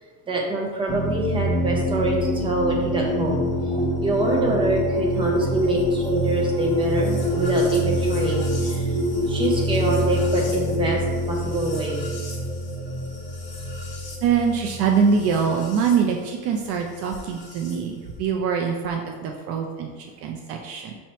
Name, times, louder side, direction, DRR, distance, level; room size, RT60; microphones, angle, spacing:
voice 1, 0.3-3.4 3.7-8.8 9.3-11.0 11.3-12.0, right 2 dB, 15° right, -2 dB, 0.7 m, -25 dB
sound 1, 0.9-16.0 17.1-17.7, equal, 35° left, 1.2 m, -25 dB
voice 2, 4.0-4.5 5.4-5.7 14.2-21.0, right 6 dB, 45° right, 2 dB, 0.4 m, -24 dB
5.7 x 3.1 x 2.9 m, 1.4 s
cardioid pair, 155°, 33 cm